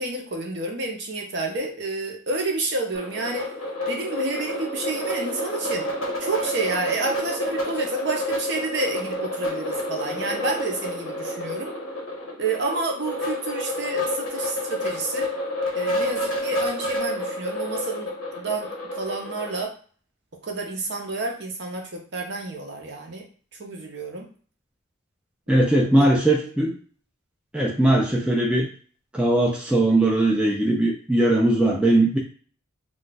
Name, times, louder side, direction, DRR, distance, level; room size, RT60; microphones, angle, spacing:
voice 1, 0.0-3.5 3.9-5.9 6.2-11.7 12.4-15.3 15.7-18.1 18.4-19.7 20.4-23.2 23.6-24.2 26.0-26.1, right 2 dB, 55° right, 2 dB, 0.7 m, -29 dB
sound 1, 2.9-19.6, left 1 dB, 65° left, 1.0 m, -29 dB
voice 2, 25.5-26.7 27.5-28.7 29.1-32.2, right 1 dB, 5° right, -2 dB, 0.3 m, -20 dB
2.4 x 2.3 x 3.9 m, 0.42 s
head